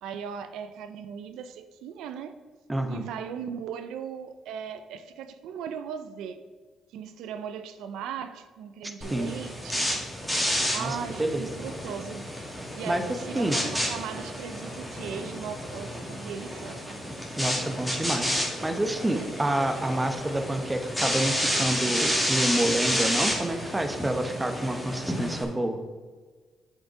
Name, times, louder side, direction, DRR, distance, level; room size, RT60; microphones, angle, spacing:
voice 1, 0.0-2.4 2.9-6.4 6.9-9.9 10.7-12.3 12.7-17.0, right 7 dB, 90° right, 9 dB, 0.5 m, -38 dB
voice 2, 2.7-3.0 9.1-9.3 10.8-11.4 12.9-13.0 13.3-13.6 17.4-25.8, right 1 dB, 15° right, 6 dB, 1.0 m, -28 dB
sound 1, 9.0-25.4, equal, ahead, 2.1 m, -30 dB
7.4 x 5.3 x 4.8 m, 1.4 s
cardioid pair, 90°, 0 cm